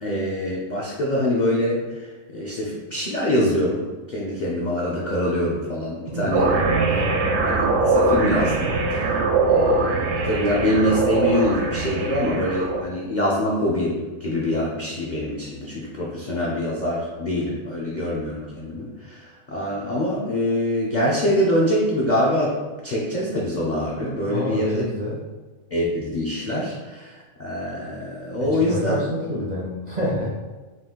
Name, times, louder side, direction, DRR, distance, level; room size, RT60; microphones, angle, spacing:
voice 1, 0.0-6.5 7.4-22.6 22.8-24.8 25.7-29.0, left 1 dB, 60° left, -5 dB, 0.4 m, -24 dB
voice 2, 6.1-6.5 6.9-7.2 24.3-25.2 28.4-30.4, left 1 dB, 50° right, -5 dB, 0.5 m, -28 dB
sound 1, 6.3-12.8, right 3 dB, 70° right, 0.8 m, -22 dB
4.1 x 2.4 x 3.7 m, 1.2 s
omnidirectional pair, 1.6 m